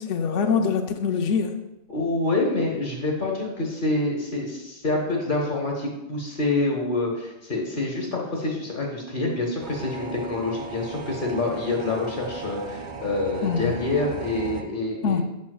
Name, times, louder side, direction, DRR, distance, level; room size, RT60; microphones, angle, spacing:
voice 1, 0.0-1.5 13.4-13.7 15.0-15.2, left 6 dB, 80° left, 5 dB, 1.0 m, -24 dB
voice 2, 1.9-15.2, left 2 dB, 45° left, 0 dB, 1.2 m, -27 dB
sound 1, 9.6-14.6, right 4 dB, 50° right, 0.7 m, -37 dB
7.2 x 6.1 x 2.3 m, 0.93 s
omnidirectional pair, 1.2 m